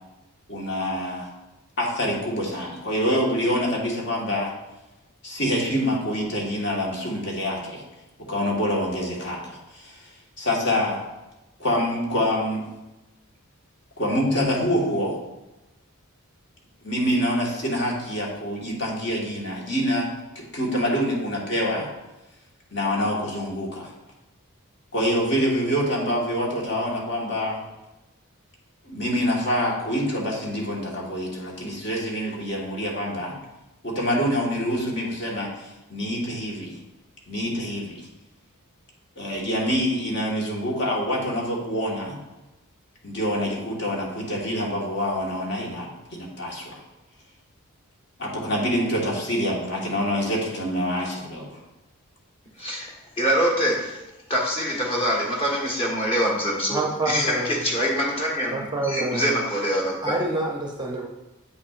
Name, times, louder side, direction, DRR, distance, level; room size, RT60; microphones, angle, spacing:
voice 1, 0.5-1.3 1.8-4.5 5.2-7.8 8.3-10.1 10.4-11.0 11.6-12.6 14.0-15.2 16.8-20.1 20.5-21.9 22.7-23.9 24.9-27.6 28.8-33.3 33.8-36.7 37.3-38.0 39.2-42.2 43.0-46.8 48.2-51.6, equal, 55° left, -3 dB, 1.5 m, -26 dB
voice 2, 52.6-52.9 53.2-54.0 54.3-58.6 58.8-60.2, equal, 25° left, -2 dB, 1.5 m, -24 dB
voice 3, 56.7-57.6 58.5-59.3 60.0-61.1, right 2 dB, 20° right, 1 dB, 0.6 m, -27 dB
8.2 x 5.8 x 2.5 m, 1.0 s
head